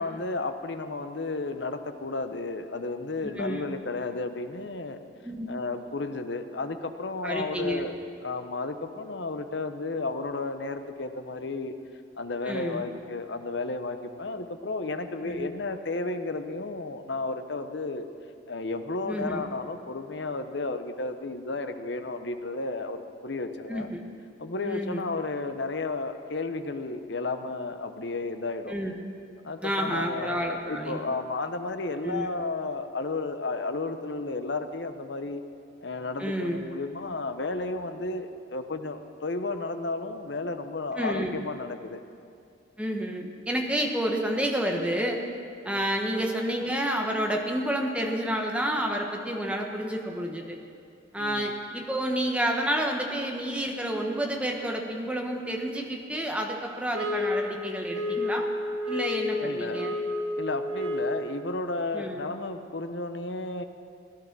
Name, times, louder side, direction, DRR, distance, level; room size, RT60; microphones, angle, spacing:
voice 1, 0.0-5.0 5.5-7.9 8.2-11.7 12.2-18.1 18.5-23.9 24.4-28.8 29.4-35.4 35.8-42.0 45.6-45.9 51.2-51.5 59.4-59.8 60.1-63.6, left 3 dB, 60° left, 8 dB, 0.8 m, -33 dB
voice 2, 7.2-7.8 12.4-12.8 15.2-15.5 19.1-19.4 23.7-24.0 24.6-25.0 28.7-28.9 29.6-31.0 32.0-32.3 36.2-36.6 40.9-41.4 42.8-45.2 45.6-50.6 51.1-58.4 58.8-59.9 61.9-62.2, equal, 5° right, 1 dB, 1.2 m, -29 dB
sound 1, 56.9-61.3, left 2 dB, 80° right, 1.9 m, -30 dB
17.5 x 11.5 x 6.1 m, 2.4 s
head